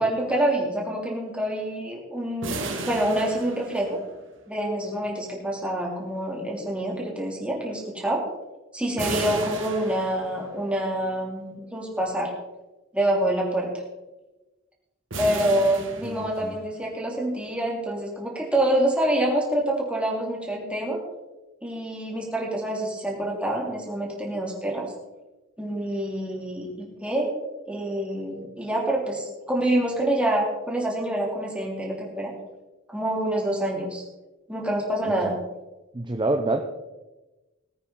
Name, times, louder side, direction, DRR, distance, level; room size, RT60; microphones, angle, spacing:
voice 1, 0.0-2.5 2.8-4.0 4.5-8.2 8.7-12.3 12.9-13.7 15.2-21.0 21.6-24.9 25.6-27.3 27.7-32.3 32.9-34.0 34.5-35.4, right 1 dB, 5° right, -2 dB, 3.1 m, -26 dB
sound 1, 2.4-4.3 9.0-10.6 15.1-16.8, right 3 dB, 75° right, 1.9 m, -34 dB
voice 2, 16.0-16.6 35.2-35.3 35.9-36.6, right 2 dB, 25° right, 5 dB, 0.7 m, -27 dB
19.5 x 9.0 x 3.9 m, 1.1 s
head